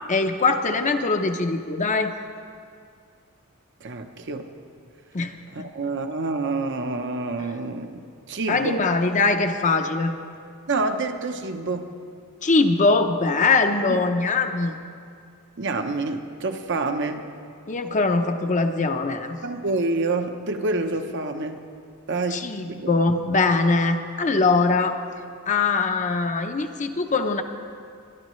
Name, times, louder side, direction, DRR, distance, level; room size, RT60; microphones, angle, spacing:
voice 1, 0.1-2.1 5.1-5.7 8.5-10.1 12.4-14.7 17.7-19.4 22.3-25.0 25.5-27.4, left 3 dB, 35° left, 6 dB, 0.7 m, -22 dB
voice 2, 3.8-4.5 5.5-8.8 10.7-11.9 13.9-14.0 15.6-17.3 19.4-21.6 22.1-22.4 22.7-22.9, right 3 dB, 55° right, 6 dB, 0.8 m, -27 dB
24.5 x 11.0 x 3.2 m, 2.3 s
head